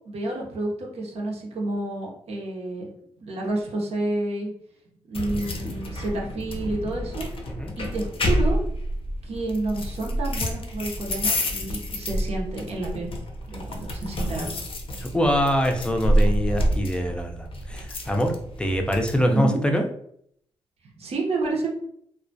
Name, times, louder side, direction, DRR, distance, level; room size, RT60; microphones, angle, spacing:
voice 1, 0.1-2.9 3.2-4.5 5.1-7.3 7.8-8.6 9.2-13.1 13.5-14.5 14.9-15.0 19.3-19.6 21.0-21.7, right 2 dB, 70° right, -2 dB, 0.7 m, -29 dB
sound 1, 5.1-19.2, equal, 55° left, 0.5 m, -28 dB
voice 2, 15.0-19.9, equal, 10° left, 3 dB, 0.5 m, -24 dB
2.2 x 2.1 x 2.6 m, 0.68 s
supercardioid pair, 50°, 11 cm